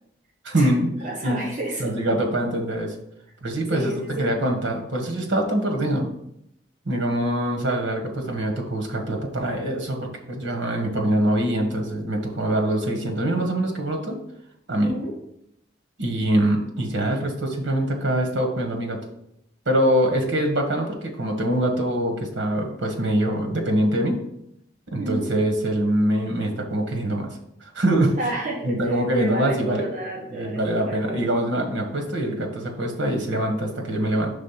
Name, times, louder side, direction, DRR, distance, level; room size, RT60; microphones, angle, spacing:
voice 1, 0.4-0.9 1.2-1.4 1.8-3.0 3.4-6.1 6.8-14.2 14.7-14.9 16.0-19.0 19.6-24.2 24.9-27.3 27.7-28.1 28.6-29.9 30.3-34.3, right 1 dB, 85° right, 2 dB, 1.3 m, -24 dB
voice 2, 1.0-1.9 3.7-4.3 14.8-15.1 25.0-25.3 28.2-31.3, right 1 dB, 45° right, -2 dB, 1.4 m, -31 dB
5.4 x 3.6 x 5.6 m, 0.76 s
head